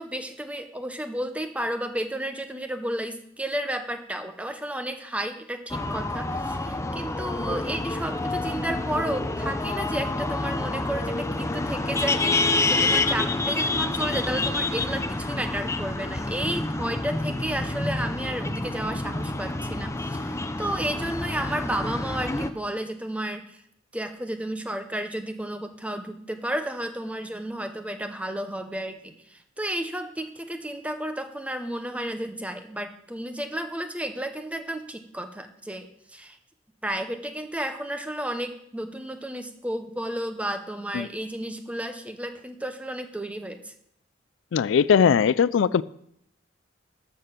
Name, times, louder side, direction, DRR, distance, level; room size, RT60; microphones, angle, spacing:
voice 1, 0.0-23.6 23.9-35.9 36.1-36.4 36.8-43.7, right 1 dB, 5° right, 7 dB, 0.9 m, -32 dB
sound 1, 5.7-22.5, left 2 dB, 15° left, 0.6 m, -28 dB
voice 2, 44.5-45.8, left 7 dB, 80° left, 19 dB, 0.4 m, -20 dB
13.0 x 6.8 x 5.9 m, 0.74 s
head